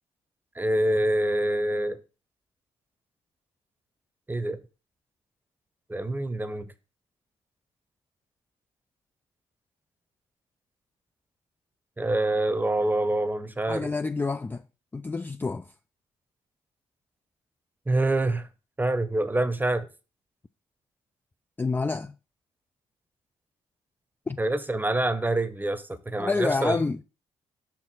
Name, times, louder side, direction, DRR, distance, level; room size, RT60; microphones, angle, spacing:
voice 1, 0.6-2.0 4.3-4.6 5.9-6.7 12.0-13.9 17.9-18.5 18.8-19.9 24.4-26.8, right 1 dB, 15° right, 0.8 m, -26 dB
voice 2, 13.7-14.6 14.9-15.7 21.6-22.1 24.3-24.4 26.2-27.0, left 4 dB, 15° left, 0.3 m, -28 dB
5.7 x 4.5 x 4.1 m
supercardioid pair, 55°, 13 cm